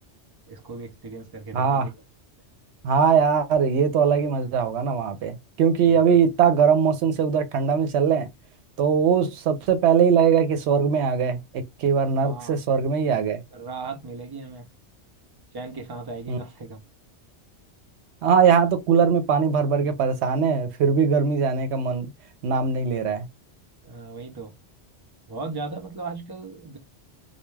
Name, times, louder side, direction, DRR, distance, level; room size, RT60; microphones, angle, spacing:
voice 1, 0.5-1.9 5.9-6.2 12.2-12.6 13.5-14.7 15.5-16.8 23.8-24.5 25.3-26.8, right 3 dB, 30° right, 0.4 m, -37 dB
voice 2, 1.5-1.9 2.8-8.3 8.8-13.4 16.3-16.4 18.2-22.1 22.4-23.3, right 6 dB, 70° right, 0.8 m, -21 dB
2.3 x 2.2 x 3.1 m
omnidirectional pair, 1.2 m